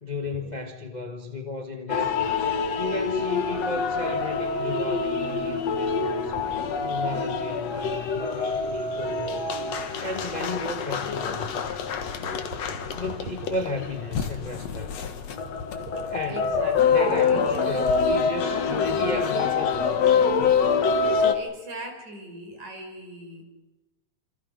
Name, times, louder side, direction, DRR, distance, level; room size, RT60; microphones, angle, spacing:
voice 1, 0.0-2.3 2.8-6.5 6.8-9.6 10.0-11.6 12.9-14.9 16.1-16.5 16.9-20.0, left 2 dB, 40° left, 0.6 m, -34 dB
sound 1, 1.9-21.3, left 5 dB, 60° left, 2.5 m, -26 dB
voice 2, 6.3-6.6 9.0-9.4 9.9-10.0 11.5-11.7 12.1-12.8 13.2-13.3 14.4-14.5 15.4-15.5 15.9-17.7 21.3-23.4, right 2 dB, 70° right, 6.0 m, -40 dB
27.5 x 26.5 x 5.3 m
omnidirectional pair, 3.4 m